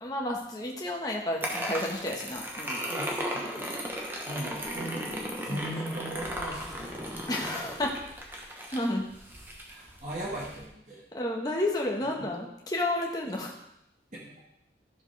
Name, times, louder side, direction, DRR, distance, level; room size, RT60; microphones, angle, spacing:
voice 1, 0.0-2.8 5.5-5.6 7.3-7.9 8.7-9.0 11.1-13.5, left 1 dB, 20° left, -1 dB, 1.5 m, -31 dB
sound 1, 1.4-10.6, equal, 10° right, 1.3 m, -36 dB
voice 2, 2.9-3.8 4.3-7.6 9.7-11.0 12.2-12.3 14.1-14.3, right 1 dB, 40° right, -5 dB, 1.8 m, -39 dB
13.5 x 7.2 x 3.5 m, 0.79 s
head